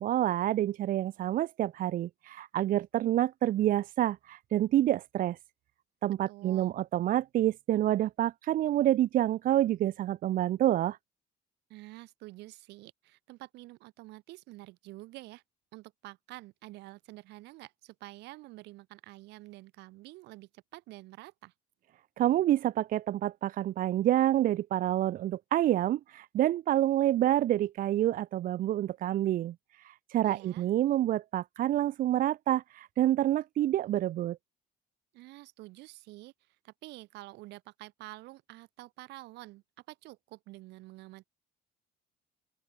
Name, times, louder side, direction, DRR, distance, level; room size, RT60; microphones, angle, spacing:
voice 1, 0.0-5.4 6.0-11.0 22.2-34.4, right 13 dB, 55° right, 0.5 m, -28 dB
voice 2, 6.3-6.7 11.7-15.4 15.7-21.5 30.2-30.6 35.1-36.3 36.6-41.3, right 19 dB, 90° right, 7.0 m, -48 dB
open air
cardioid pair, 110°, 17 cm